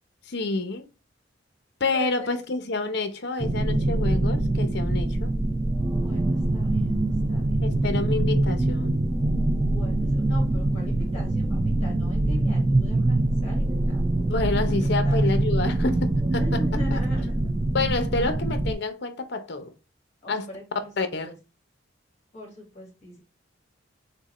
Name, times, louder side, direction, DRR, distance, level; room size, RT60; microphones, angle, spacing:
voice 1, 0.3-0.9 1.8-5.4 7.6-9.0 14.2-16.6 16.9-17.0 17.7-19.7 20.3-20.4 21.0-21.3, left 3 dB, 60° left, 0.7 m, -28 dB
voice 2, 1.9-2.4 5.9-7.6 9.6-14.0 14.8-15.3 16.4-17.5 18.1-18.3 20.2-20.9 21.2-21.4 22.3-23.2, left 1 dB, 35° left, 1.8 m, -41 dB
sound 1, 3.4-18.7, right 1 dB, 20° right, 0.4 m, -24 dB
6.0 x 2.2 x 3.1 m
head